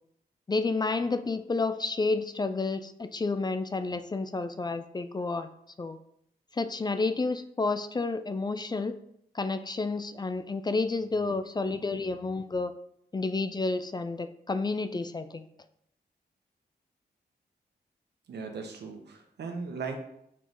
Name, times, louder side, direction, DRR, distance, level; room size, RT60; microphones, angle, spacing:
voice 1, 0.5-5.5 5.8-6.0 6.5-8.9 9.3-12.7 13.1-15.5, left 3 dB, 25° left, 10 dB, 0.4 m, -30 dB
voice 2, 18.3-20.0, right 5 dB, 85° right, 4 dB, 1.1 m, -37 dB
6.0 x 4.6 x 4.0 m, 0.73 s
wide cardioid pair, 100°, 17 cm